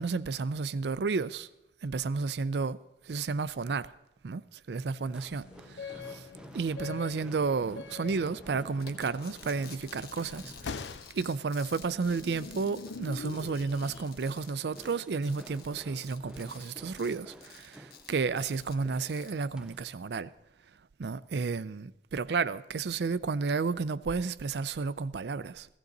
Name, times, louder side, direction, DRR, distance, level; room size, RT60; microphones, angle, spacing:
voice 1, 0.0-1.5 1.8-2.8 3.1-3.9 4.2-4.4 4.7-6.2 6.5-10.5 11.1-20.3 21.0-25.7, right 4 dB, 75° right, 0.4 m, -32 dB
sound 1, 5.0-19.9, equal, 5° right, 0.5 m, -52 dB
sound 2, 5.3-14.1, left 5 dB, 90° left, 0.6 m, -44 dB
sound 3, 8.8-19.4, left 7 dB, 60° left, 1.2 m, -52 dB
15.5 x 15.5 x 3.9 m
head